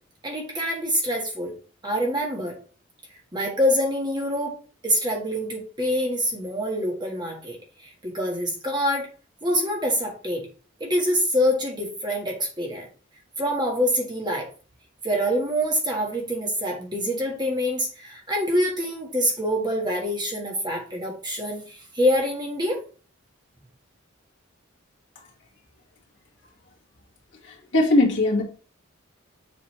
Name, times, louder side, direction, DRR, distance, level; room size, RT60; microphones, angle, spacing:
voice 1, 0.2-1.5 1.8-2.6 3.3-4.5 4.8-7.6 8.0-9.1 9.4-10.5 10.8-12.9 13.4-14.5 15.0-22.8, equal, 20° right, 0 dB, 1.5 m, -25 dB
voice 2, 27.4-28.4, left 2 dB, 55° left, -2 dB, 1.9 m, -20 dB
7.3 x 5.3 x 3.2 m, 0.37 s
head